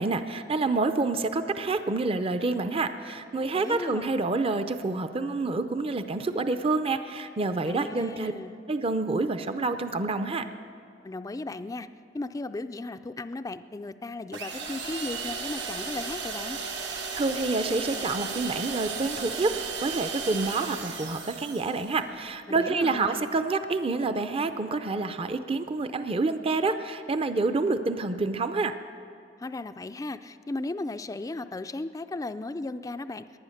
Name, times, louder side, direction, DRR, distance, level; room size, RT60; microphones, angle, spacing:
voice 1, 0.0-8.3 8.7-10.5 17.1-19.6 19.8-28.8, right 3 dB, 30° right, 10 dB, 0.5 m, -28 dB
voice 2, 3.5-4.1 7.6-8.5 11.0-11.9 12.1-16.6 22.5-23.3 29.4-33.4, left 2 dB, 20° left, 10 dB, 0.3 m, -36 dB
sound 1, 14.3-21.9, right 5 dB, 80° right, 1.9 m, -35 dB
19.0 x 11.0 x 6.5 m, 2.4 s
head